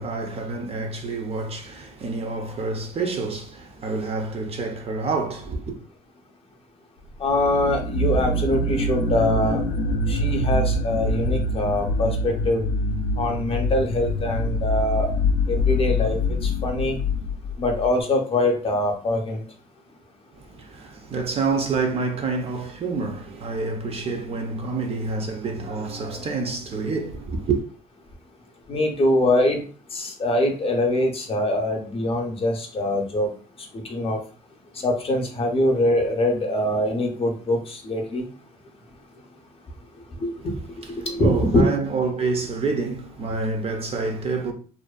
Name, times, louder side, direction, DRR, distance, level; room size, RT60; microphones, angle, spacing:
voice 1, 0.0-5.8 20.3-27.6 40.8-44.5, right 4 dB, 35° right, 0.4 m, -28 dB
voice 2, 7.2-9.6 10.1-12.6 13.2-15.1 15.5-17.0 17.6-19.4 28.7-29.6 29.9-33.3 33.9-34.2 34.8-38.3 40.2-40.3 41.1-41.6, left 1 dB, 35° left, 0.6 m, -23 dB
sound 1, 7.3-17.9, left 2 dB, 85° left, 0.4 m, -25 dB
2.5 x 2.2 x 2.3 m
cardioid pair, 110°, 17 cm